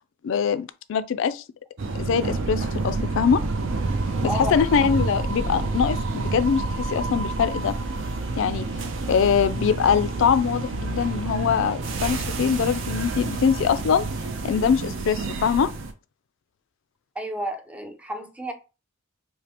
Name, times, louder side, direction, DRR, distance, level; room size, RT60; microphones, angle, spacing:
voice 1, 0.2-1.4 2.0-3.4 4.2-7.8 8.4-8.7 9.1-14.0 14.4-15.7, left 7 dB, 65° left, 0.3 m, -23 dB
sound 1, 1.8-15.9, right 3 dB, 70° right, 0.6 m, -28 dB
voice 2, 17.2-18.5, equal, 5° right, 0.5 m, -31 dB
5.0 x 2.0 x 2.9 m
head